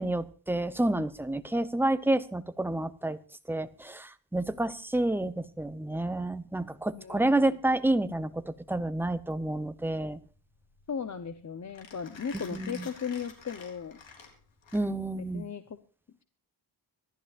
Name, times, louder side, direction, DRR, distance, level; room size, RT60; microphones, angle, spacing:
voice 1, 0.0-3.2 3.5-10.2 12.5-12.8 14.7-15.5, right 1 dB, 5° right, 12 dB, 0.8 m, -29 dB
voice 2, 7.0-7.6 10.9-14.0 15.3-15.8, left 6 dB, 40° left, 10 dB, 0.9 m, -37 dB
Mechanisms, 9.1-15.2, left 5 dB, 75° left, 3.9 m, -51 dB
26.0 x 12.0 x 2.5 m, 0.39 s
wide cardioid pair, 135°, 45 cm